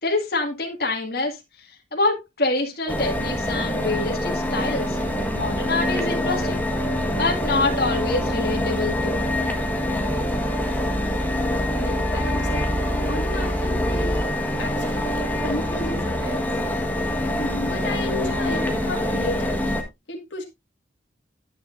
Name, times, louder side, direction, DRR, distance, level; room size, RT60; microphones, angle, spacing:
voice 1, 0.0-1.4 1.9-5.0 5.3-6.6 7.1-9.3, left 2 dB, 55° left, 2.0 m, -26 dB
sound 1, 2.9-19.8, left 1 dB, 10° left, 1.4 m, -25 dB
voice 2, 11.7-14.2 14.6-15.2 15.4-16.4 17.4-20.4, left 2 dB, 80° left, 2.1 m, -33 dB
9.7 x 9.6 x 2.6 m
head